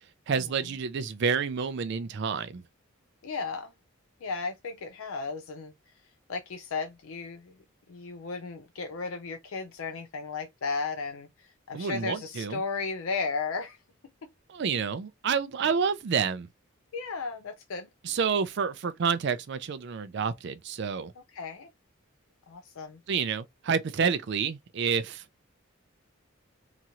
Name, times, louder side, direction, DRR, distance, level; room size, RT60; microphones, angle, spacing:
voice 1, 0.3-2.6 11.7-12.6 14.5-16.5 18.0-21.1 23.1-25.2, right 6 dB, 55° right, 0.4 m, -29 dB
voice 2, 3.2-3.7 4.2-5.7 6.3-7.5 7.9-13.8 16.9-17.9 21.3-21.7 22.5-23.0, left 4 dB, 80° left, 0.5 m, -35 dB
2.9 x 2.4 x 2.8 m
head